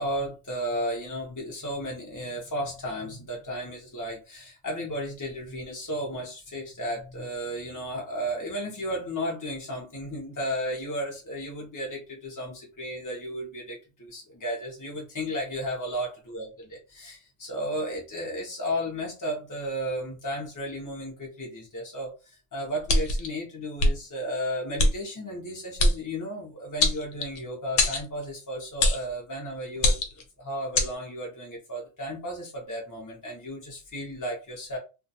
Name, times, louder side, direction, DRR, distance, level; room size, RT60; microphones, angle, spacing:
voice 1, 0.0-34.8, equal, 30° left, -2 dB, 0.3 m, -34 dB
sound 1, 22.9-23.3 23.8-23.9 24.8-24.9 25.8-26.0 26.8-27.4 27.8-28.0 28.8-29.1 29.8-30.2 30.7-30.9, left 1 dB, 80° left, 1.0 m, -22 dB
2.2 x 2.2 x 2.7 m, 0.30 s
omnidirectional pair, 1.3 m